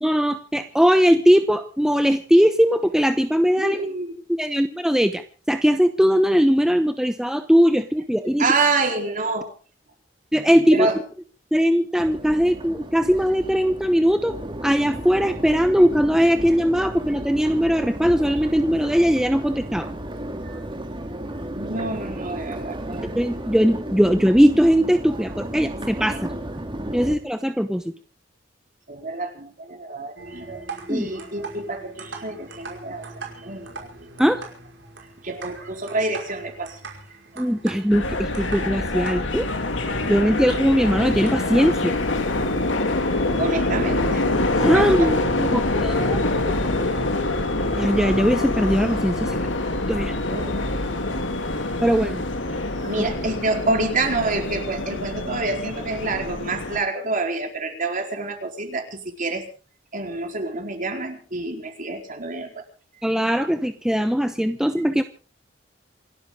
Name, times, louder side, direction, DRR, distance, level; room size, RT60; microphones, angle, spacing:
voice 1, 0.0-3.9 4.3-8.5 10.3-10.9 11.5-14.4 14.6-19.9 23.0-26.3 26.9-27.9 30.9-31.1 34.2-34.4 37.4-39.5 40.1-41.9 44.6-46.2 46.4-46.5 47.7-49.5 49.9-50.2 51.8-52.2 53.0-53.1 63.0-65.0, equal, 5° right, 7 dB, 0.9 m, -20 dB
voice 2, 3.6-4.2 8.4-9.5 10.7-11.0 20.4-20.6 21.5-23.1 27.0-27.1 28.9-33.9 35.2-37.0 43.4-44.3 44.7-45.1 50.3-50.7 52.0-52.1 52.8-59.5 59.9-62.6, right 3 dB, 45° right, 3 dB, 4.3 m, -27 dB
Crowd, 12.0-27.1, right 1 dB, 25° right, 2.1 m, -33 dB
sound 1, 30.2-41.3, right 3 dB, 75° right, 5.4 m, -41 dB
sound 2, 37.9-56.8, left 2 dB, 90° left, 2.5 m, -25 dB
28.0 x 12.5 x 3.8 m, 0.38 s
head